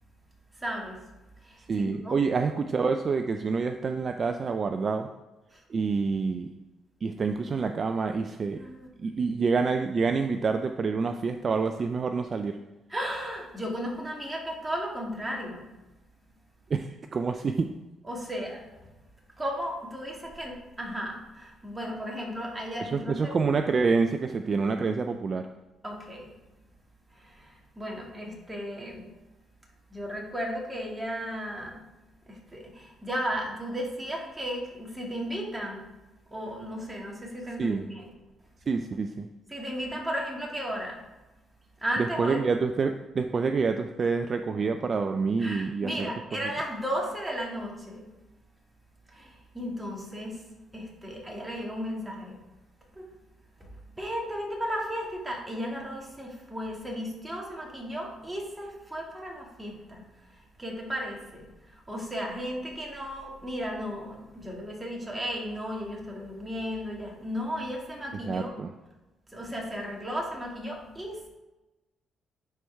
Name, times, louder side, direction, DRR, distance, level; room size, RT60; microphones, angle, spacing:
voice 1, 0.5-1.0 1.4-2.2 5.5-5.6 8.5-8.9 12.9-15.7 18.0-18.6 19.4-23.3 25.8-26.3 27.1-29.1 29.9-31.9 32.3-35.8 36.3-38.1 39.5-41.0 41.8-42.4 45.4-48.1 49.1-50.4 50.7-52.4 52.9-53.1 53.6-53.7 54.0-68.5 69.3-71.3, equal, 10° right, -2 dB, 2.1 m, -35 dB
voice 2, 1.7-5.1 5.7-6.5 7.0-8.6 9.0-12.5 16.7-17.7 22.8-25.5 37.6-37.9 38.7-39.3 42.0-46.1 68.3-68.7, right 4 dB, 45° right, 6 dB, 0.4 m, -27 dB
10.5 x 4.5 x 3.5 m, 1.0 s
cardioid pair, 90°, 0 cm